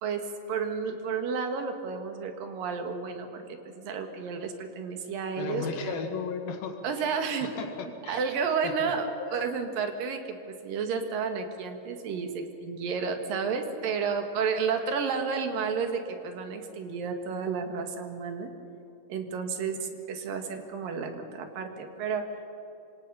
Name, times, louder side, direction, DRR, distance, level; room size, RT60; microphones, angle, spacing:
voice 1, 0.0-6.0 6.8-7.5 8.1-18.5 19.1-22.3, right 5 dB, 75° right, 5 dB, 3.4 m, -31 dB
voice 2, 5.4-7.1 7.4-8.2 8.6-8.9 9.2-9.4, left 6 dB, 80° left, 4 dB, 3.7 m, -36 dB
26.5 x 25.5 x 5.6 m, 2.8 s
omnidirectional pair, 4.1 m